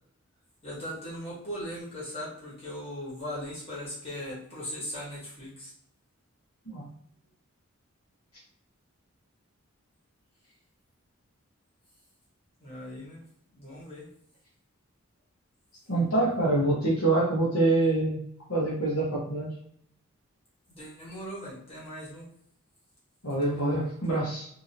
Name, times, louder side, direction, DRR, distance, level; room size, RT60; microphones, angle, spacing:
voice 1, 0.6-5.7 12.6-13.2 13.5-14.1 20.7-22.3, equal, 25° left, -7 dB, 1.3 m, -39 dB
voice 2, 15.9-18.2 18.5-19.5 23.2-24.5, right 2 dB, 85° left, -6 dB, 1.1 m, -25 dB
2.8 x 2.7 x 2.7 m, 0.68 s
head